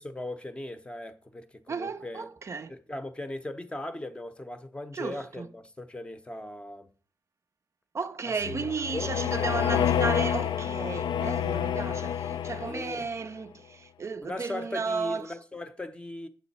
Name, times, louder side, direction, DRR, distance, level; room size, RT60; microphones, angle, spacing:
voice 1, 0.0-2.3 2.7-6.9 8.3-9.1 12.6-13.1 14.2-16.3, left 1 dB, 15° left, 0.6 m, -38 dB
voice 2, 1.7-2.7 4.9-5.5 7.9-15.3, right 4 dB, 35° right, 0.4 m, -34 dB
sound 1, 8.4-13.1, left 9 dB, 80° left, 0.4 m, -28 dB
9.1 x 7.7 x 4.1 m
wide cardioid pair, 175°, 8 cm